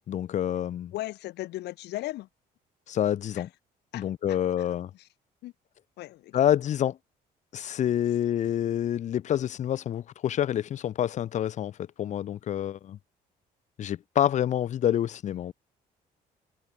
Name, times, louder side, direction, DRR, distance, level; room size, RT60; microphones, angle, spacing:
voice 1, 0.1-0.9 2.9-3.5 3.9-4.9 6.3-7.0 7.5-11.7 12.0-13.0 13.8-15.5, left 10 dB, 45° left, 0.5 m, -27 dB
voice 2, 0.9-2.3 3.4-3.5 3.9-4.7 4.9-5.1 5.4-5.5 6.0-6.4 15.3-15.4, left 17 dB, 80° left, 5.5 m, -38 dB
cardioid pair, 110°, 17 cm